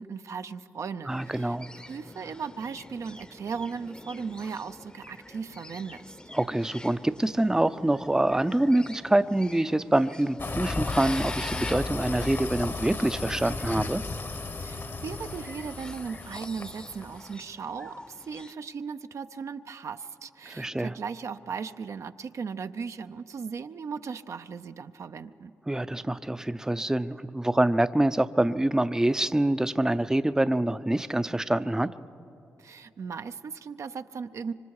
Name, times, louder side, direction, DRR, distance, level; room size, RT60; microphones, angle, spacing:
voice 1, 0.0-6.1 14.6-25.5 32.6-34.5, right 5 dB, 65° right, 9 dB, 0.6 m, -37 dB
sound 1, 1.1-18.5, left 1 dB, 15° left, 0.8 m, -46 dB
voice 2, 1.1-1.7 6.3-14.0 20.5-20.9 25.7-31.9, right 1 dB, 10° right, 12 dB, 0.6 m, -25 dB
sound 2, 10.4-17.3, left 3 dB, 45° left, 1.2 m, -34 dB
25.5 x 25.0 x 4.8 m, 2.7 s
cardioid pair, 55°, 6 cm